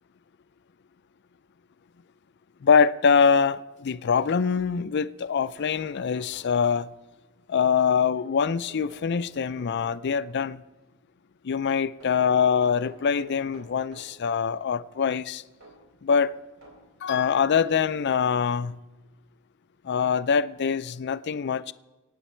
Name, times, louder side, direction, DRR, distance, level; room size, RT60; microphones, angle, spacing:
voice 1, 2.6-6.9 7.5-10.6 11.4-15.4 16.0-16.3 17.0-18.8 19.8-21.7, left 6 dB, 55° left, 0.4 m, -24 dB
sound 1, 4.9-5.0 5.2-7.0 8.5-10.5 12.0-14.2 15.6-17.5 18.3-18.4 19.8-19.9 20.2-20.3, right 2 dB, 80° right, 3.9 m, -51 dB
24.0 x 9.1 x 4.4 m
head